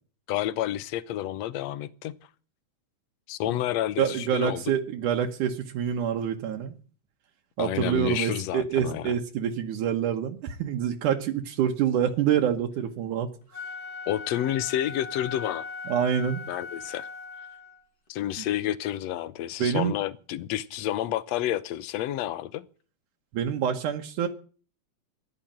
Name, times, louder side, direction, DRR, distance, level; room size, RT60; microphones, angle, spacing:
voice 1, 0.3-2.2 3.3-4.6 7.6-9.1 14.1-15.7 16.5-17.1 18.1-22.7, left 12 dB, 70° left, 1.9 m, -30 dB
voice 2, 4.0-6.7 7.6-13.3 15.9-16.5 18.4-18.5 19.6-20.0 23.3-24.3, right 9 dB, 80° right, 2.7 m, -26 dB
Wind instrument woodwind instrument, 13.4-17.8, left 4 dB, 35° left, 2.2 m, -39 dB
14.5 x 11.5 x 7.5 m
omnidirectional pair, 3.6 m